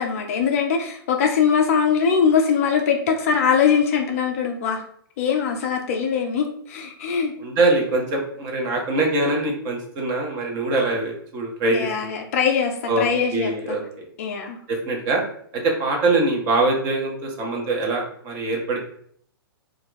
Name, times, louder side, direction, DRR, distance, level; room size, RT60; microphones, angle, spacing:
voice 1, 0.0-4.8 5.2-7.3 11.7-13.8 14.2-14.6, left 6 dB, 35° left, 4 dB, 0.4 m, -22 dB
voice 2, 7.4-12.1 12.9-13.1 13.3-14.0 14.7-15.2 15.6-18.8, right 2 dB, 25° right, 1 dB, 0.7 m, -23 dB
2.3 x 2.2 x 3.8 m, 0.62 s
figure-of-eight pair, 110°, 13 cm